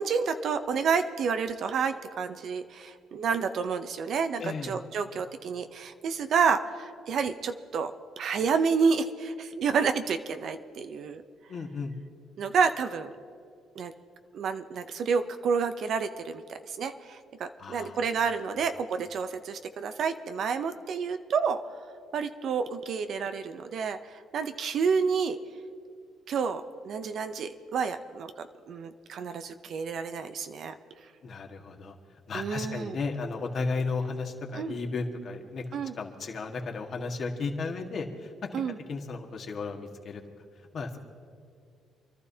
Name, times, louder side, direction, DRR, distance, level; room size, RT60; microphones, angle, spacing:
voice 1, 0.0-11.2 12.4-13.1 13.8-13.9 14.3-21.6 22.1-25.4 26.3-30.7 32.3-33.0 34.5-34.7 35.7-35.9 38.5-38.7, right 5 dB, 60° right, 9 dB, 0.6 m, -29 dB
voice 2, 4.4-4.7 11.5-12.0 17.6-18.0 31.2-31.9 32.3-35.6 36.0-38.5 38.9-40.2 40.7-41.0, left 4 dB, 50° left, 2 dB, 1.6 m, -34 dB
28.5 x 12.0 x 2.8 m, 2.3 s
cardioid pair, 90°, 0 cm